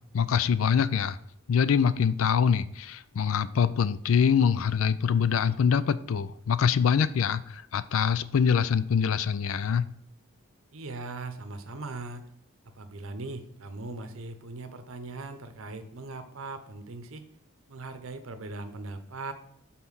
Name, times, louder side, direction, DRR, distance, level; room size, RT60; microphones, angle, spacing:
voice 1, 0.1-1.2 1.5-9.8, left 7 dB, 70° left, 15 dB, 0.4 m, -24 dB
voice 2, 10.7-12.2 12.7-17.2 17.7-19.3, right 3 dB, 70° right, 9 dB, 0.7 m, -39 dB
5.6 x 4.2 x 6.2 m, 0.69 s
head